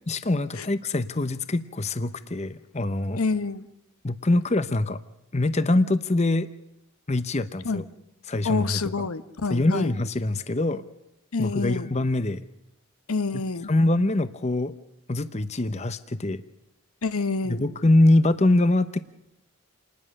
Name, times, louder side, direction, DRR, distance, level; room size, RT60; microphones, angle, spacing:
voice 1, 0.1-3.2 4.0-5.0 5.3-6.5 7.1-7.8 8.3-9.1 9.5-10.8 11.4-12.4 13.7-14.7 15.1-16.4 17.4-19.0, left 2 dB, 30° left, 13 dB, 0.7 m, -24 dB
voice 2, 3.2-3.7 7.6-7.8 8.4-9.9 11.3-11.9 13.1-13.7 17.0-17.6, left 4 dB, 80° left, 13 dB, 1.0 m, -27 dB
28.0 x 20.0 x 6.5 m, 0.87 s
head